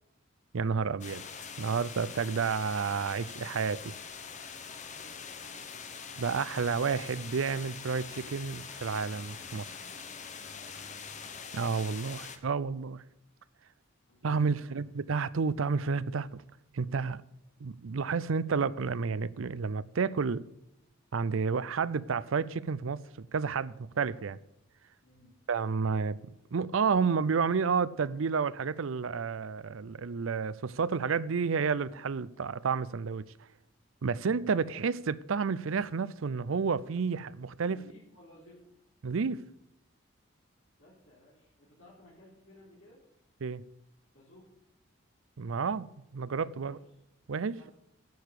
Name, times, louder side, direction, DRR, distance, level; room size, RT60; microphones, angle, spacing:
voice 1, 0.5-1.2 1.6-3.9 6.2-9.7 11.5-13.0 14.2-16.3 16.7-17.2 17.6-20.4 21.1-24.4 25.5-26.2 26.5-33.2 34.0-37.8 39.0-39.4 43.4-43.6 45.4-46.8 47.3-47.6, right 5 dB, 70° right, 0.5 m, -30 dB
sound 1, 1.0-12.4, left 6 dB, 35° left, 0.9 m, -44 dB
voice 2, 4.8-5.8 10.4-10.8 14.1-14.7 25.0-25.3 37.7-38.6 40.8-43.0 44.1-44.5 46.6-46.8 47.5-47.7, left 1 dB, 70° left, 4.2 m, -57 dB
10.5 x 6.8 x 8.3 m
head